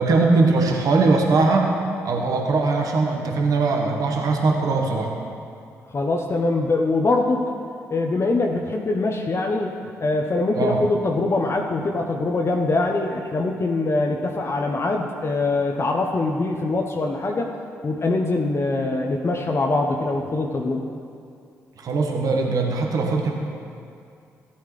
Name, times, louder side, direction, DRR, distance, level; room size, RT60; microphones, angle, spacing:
voice 1, 0.0-1.7 2.0-5.1 10.5-10.8 21.8-23.3, right 3 dB, 60° right, 1 dB, 1.3 m, -20 dB
voice 2, 5.9-7.5 7.9-9.7 10.0-17.5 17.8-20.9, left 2 dB, 40° left, 1 dB, 0.9 m, -23 dB
14.5 x 8.5 x 3.2 m, 2.4 s
hypercardioid pair, 45°, 7 cm